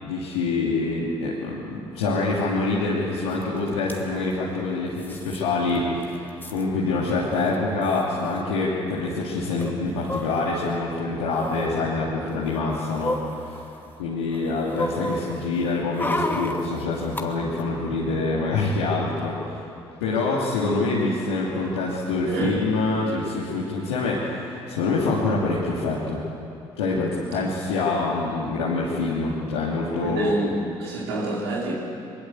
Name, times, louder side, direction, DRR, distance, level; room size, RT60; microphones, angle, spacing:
voice 1, 0.0-6.2 6.5-13.2 13.4-13.6 14.0-19.4 20.0-26.2 26.8-30.3, left 3 dB, 85° left, -7 dB, 2.9 m, -25 dB
sound 1, 3.4-3.5 3.7-4.0 5.0-5.4 5.8-5.9 6.0-6.6 7.5-7.6 7.8-8.0 9.6-10.7 11.3-11.7 12.3-14.0 14.3-17.2 17.6-17.7, left 1 dB, 15° left, 2.6 m, -32 dB
voice 2, 22.2-22.6 30.0-31.7, right 2 dB, 85° right, -4 dB, 4.9 m, -27 dB
22.5 x 22.0 x 8.1 m, 2.6 s
hypercardioid pair, 50°, 13 cm